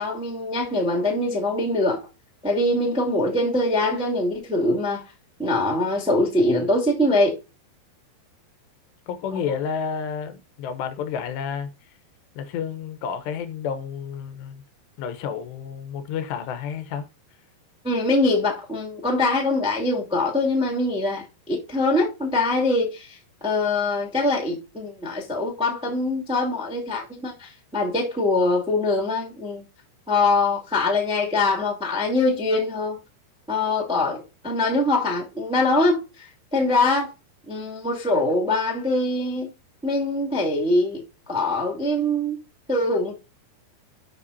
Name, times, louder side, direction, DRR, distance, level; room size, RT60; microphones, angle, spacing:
voice 1, 0.0-2.0 2.4-5.0 5.4-7.3 17.8-23.2 23.4-29.6 30.1-33.0 33.5-36.3 36.5-37.1 37.5-39.5 39.8-41.0 41.3-42.4 42.7-43.1, left 2 dB, 5° right, 1.0 m, -23 dB
voice 2, 9.1-11.7 12.4-14.6 15.0-17.1, left 7 dB, 80° left, 3.2 m, -30 dB
13.0 x 5.7 x 2.7 m
omnidirectional pair, 4.9 m